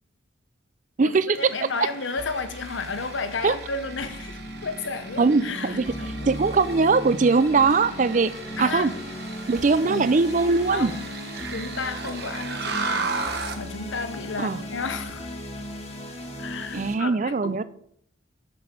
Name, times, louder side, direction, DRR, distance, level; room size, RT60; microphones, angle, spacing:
voice 1, 1.0-6.3 8.6-9.0 9.8-10.2 10.7-11.1 11.5-15.3 16.4-17.6, left 4 dB, 75° left, 0.9 m, -33 dB
sound 1, 1.3-13.7, right 4 dB, 55° right, 1.1 m, -36 dB
sound 2, 2.2-16.9, left 1 dB, 35° left, 1.4 m, -37 dB
voice 2, 5.2-5.8 6.3-8.3 8.6-8.9 9.5-10.9 14.4-14.6 16.7-17.6, right 4 dB, 40° right, 0.4 m, -21 dB
6.8 x 6.1 x 6.6 m
head